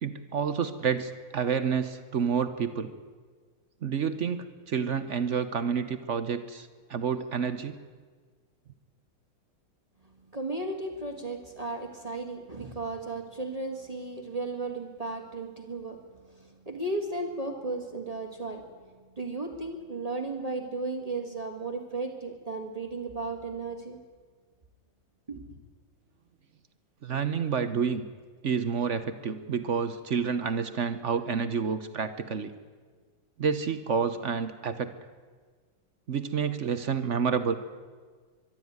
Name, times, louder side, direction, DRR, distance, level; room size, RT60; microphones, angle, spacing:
voice 1, 0.0-2.9 3.8-7.7 27.0-28.1 28.4-32.5 33.4-34.9 36.1-37.6, right 6 dB, 50° right, 11 dB, 1.0 m, -29 dB
voice 2, 10.3-16.0 16.3-18.7 19.2-24.0 25.3-25.4, right 3 dB, 20° right, 4 dB, 1.8 m, -35 dB
23.5 x 12.0 x 9.5 m, 1.5 s
omnidirectional pair, 2.0 m